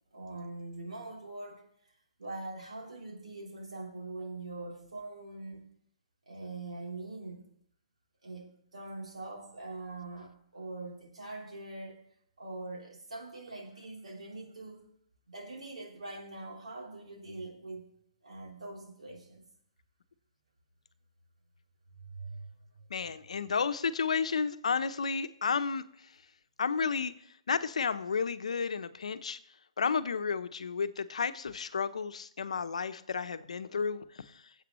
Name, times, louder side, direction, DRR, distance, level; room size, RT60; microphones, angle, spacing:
voice 1, 0.1-1.7 2.2-5.7 6.3-7.5 8.2-12.0 12.4-14.9 15.3-17.8 18.2-19.4 21.9-22.5 22.7-23.1, right 2 dB, 90° right, 3.3 m, -43 dB
voice 2, 22.9-25.8 26.6-27.1 27.5-29.4 29.8-34.2, left 5 dB, 80° left, 0.8 m, -32 dB
19.5 x 8.3 x 3.1 m
hypercardioid pair, 140°, 3 cm